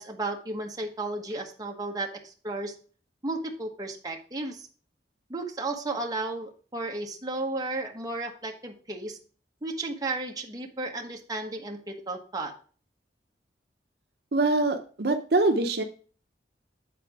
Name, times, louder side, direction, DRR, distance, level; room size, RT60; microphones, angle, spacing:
voice 1, 0.0-2.7 3.2-4.7 5.3-9.2 9.6-12.5, right 2 dB, 20° right, 1 dB, 1.2 m, -33 dB
voice 2, 14.3-15.8, right 2 dB, 65° right, 5 dB, 0.7 m, -24 dB
8.7 x 4.2 x 4.8 m, 0.39 s
head